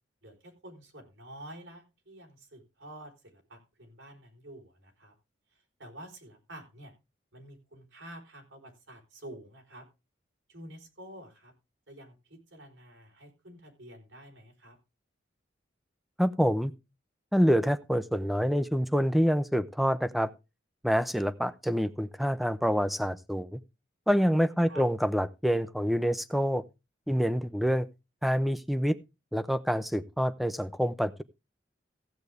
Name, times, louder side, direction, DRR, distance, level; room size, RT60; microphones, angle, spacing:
voice 1, 0.2-5.1 5.8-6.9 7.3-9.8 10.5-11.5 11.9-14.8 24.6-24.8, right 1 dB, 90° right, 2 dB, 4.2 m, -49 dB
voice 2, 16.2-16.7 17.3-20.3 20.8-23.6 24.1-26.6 27.1-27.9 28.2-29.0 29.3-31.2, equal, ahead, 13 dB, 0.5 m, -26 dB
15.5 x 8.0 x 3.5 m, 0.27 s
head